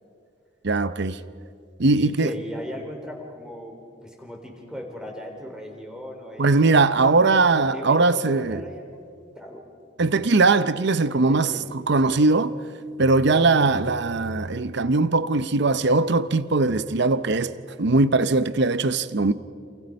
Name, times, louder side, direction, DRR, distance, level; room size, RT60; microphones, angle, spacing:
voice 1, 0.6-1.2 1.8-2.3 6.4-8.6 10.0-11.5 11.9-12.5 13.0-17.5 17.8-19.3, right 3 dB, 60° right, 0.7 m, -20 dB
voice 2, 1.9-3.8 4.0-9.7 11.1-11.7 13.3-13.5, equal, 5° right, 3.8 m, -38 dB
28.5 x 28.5 x 5.3 m
head